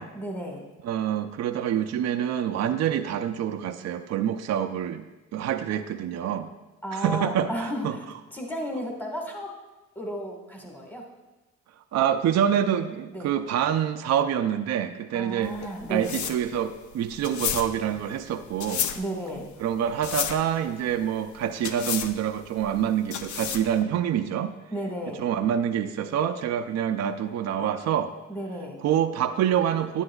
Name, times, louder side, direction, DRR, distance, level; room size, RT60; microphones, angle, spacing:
voice 1, 0.1-0.6 6.8-8.0 8.3-9.5 9.9-11.0 13.1-13.3 15.1-16.2 18.9-19.5 24.7-25.2 28.3-28.8, equal, 5° left, 1 dB, 1.5 m, -33 dB
voice 2, 0.8-6.5 6.9-8.0 11.9-15.6 15.9-18.9 19.6-24.5 25.2-28.1 28.8-30.0, right 9 dB, 60° right, 7 dB, 0.5 m, -26 dB
sound 1, 15.4-23.8, left 9 dB, 70° left, 0.6 m, -33 dB
10.5 x 9.7 x 2.3 m, 1.1 s
cardioid pair, 90°, 30 cm